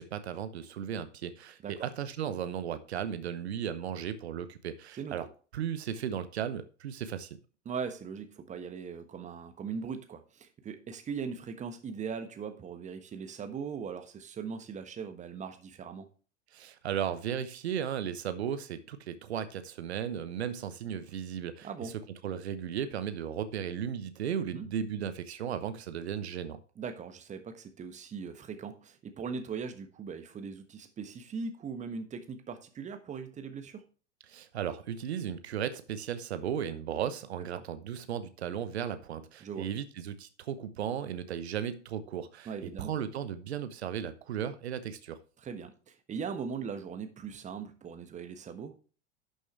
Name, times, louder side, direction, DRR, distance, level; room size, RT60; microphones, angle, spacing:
voice 1, 0.0-5.3 5.5-7.4 16.5-21.9 22.2-26.6 34.3-42.5 42.8-45.2, right 9 dB, 65° right, 1.0 m, -35 dB
voice 2, 7.6-16.1 21.6-21.9 24.5-24.7 26.8-33.8 37.5-37.6 39.4-39.7 42.5-42.9 45.4-48.7, right 6 dB, 20° right, 1.3 m, -40 dB
11.5 x 6.4 x 3.3 m
figure-of-eight pair, 90°, 36 cm